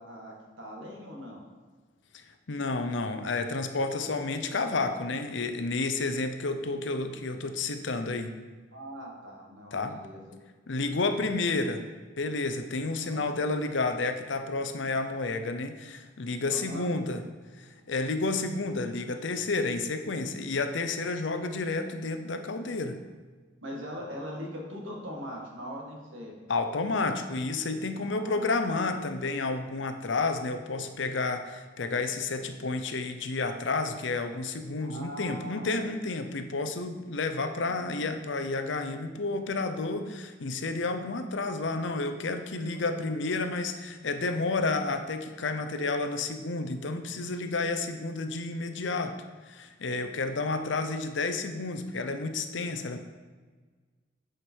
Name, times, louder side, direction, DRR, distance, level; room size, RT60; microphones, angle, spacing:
voice 1, 0.0-1.5 8.7-10.4 11.1-11.3 13.0-13.2 16.5-16.9 23.6-26.4 28.0-28.5 34.8-35.7, equal, 85° right, 0 dB, 1.7 m, -41 dB
voice 2, 2.1-8.3 9.7-10.0 10.7-11.8 12.2-17.2 17.6-23.0 26.5-49.2 49.5-53.0, left 3 dB, 75° left, 8 dB, 0.7 m, -31 dB
8.9 x 5.1 x 4.6 m, 1.4 s
head